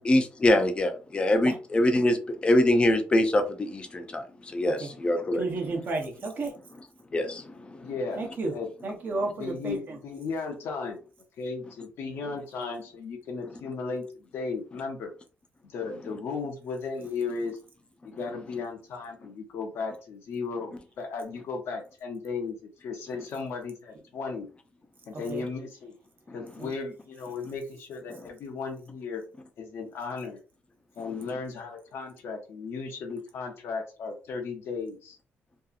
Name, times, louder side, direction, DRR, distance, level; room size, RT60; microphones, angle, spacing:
voice 1, 0.0-2.2 2.4-5.4 7.1-7.9, left 1 dB, 25° left, 0.4 m, -24 dB
voice 2, 5.3-6.5 8.2-8.5 8.8-10.0 25.1-25.4 26.6-26.7, right 2 dB, 45° right, 0.7 m, -32 dB
voice 3, 7.8-8.2 8.5-8.7 9.4-11.0 11.4-15.1 15.6-17.6 18.0-24.5 25.1-25.9 26.3-29.2 29.6-30.4 31.0-35.2, left 4 dB, 70° left, 0.5 m, -35 dB
2.7 x 2.4 x 2.4 m
cardioid pair, 135°, 4 cm